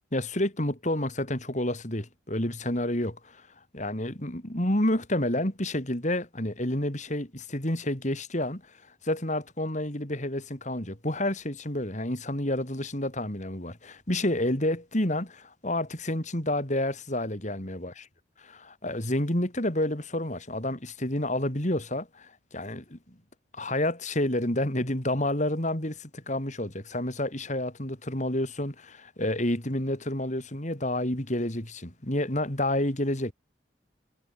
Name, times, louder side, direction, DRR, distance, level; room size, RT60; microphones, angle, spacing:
voice 1, 0.1-3.5 3.7-8.8 9.0-18.0 18.4-23.1 23.5-33.3, left 1 dB, 40° left, 4.1 m, -29 dB
head